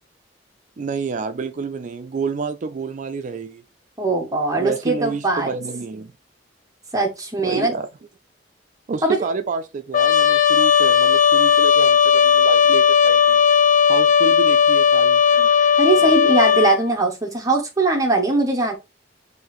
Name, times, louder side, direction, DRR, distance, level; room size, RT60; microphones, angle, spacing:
voice 1, 0.8-3.6 4.5-6.1 7.4-7.9 8.9-13.4 13.8-15.2 15.9-16.1, right 4 dB, 45° right, 0.4 m, -29 dB
voice 2, 4.0-5.5 6.9-7.7 9.0-9.3 15.4-18.7, right 2 dB, 20° right, 0.7 m, -21 dB
Trumpet, 9.9-16.8, left 7 dB, 45° left, 0.5 m, -15 dB
6.5 x 2.7 x 3.0 m
head